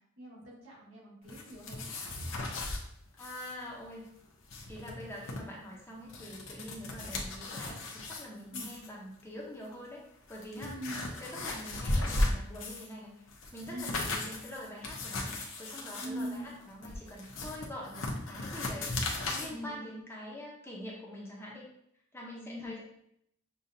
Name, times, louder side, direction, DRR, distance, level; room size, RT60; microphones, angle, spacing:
voice 1, 0.0-1.9 8.5-8.7 10.5-11.0 13.7-14.0 16.0-16.5 19.4-19.8 22.4-22.7, equal, 80° right, -6 dB, 1.7 m, -42 dB
sound 1, 1.3-2.8 3.2-3.5 3.8-3.9 4.3-5.4 5.9-8.2 8.5-8.9 9.6-9.7 10.2-12.9 13.3-19.5, left 2 dB, 65° left, 0.7 m, -36 dB
voice 2, 3.2-4.1 4.7-10.8 11.2-13.1 13.5-21.7 22.1-22.8, equal, 10° left, -4 dB, 0.7 m, -45 dB
6.6 x 2.4 x 2.7 m, 0.73 s
head